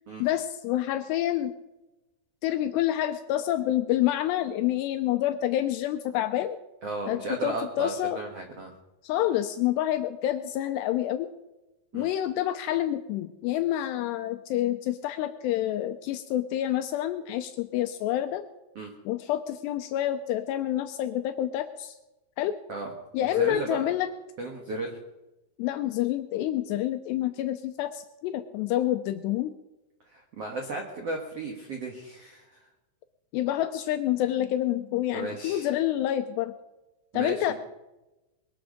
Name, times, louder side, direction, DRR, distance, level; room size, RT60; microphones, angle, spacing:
voice 1, 0.2-1.5 2.4-6.6 7.1-8.2 9.0-11.3 11.9-18.4 19.1-22.0 22.4-22.6 23.1-24.1 25.6-29.5 33.3-36.5 37.1-37.5, left 13 dB, 80° left, 9 dB, 2.5 m, -28 dB
voice 2, 6.8-8.7 11.9-12.1 18.7-18.9 22.7-22.9 23.2-23.8 24.4-25.0 30.1-32.6 35.1-35.7 37.1-37.5, right 2 dB, 70° right, 2 dB, 1.4 m, -35 dB
22.0 x 12.0 x 5.2 m, 1.0 s
omnidirectional pair, 5.4 m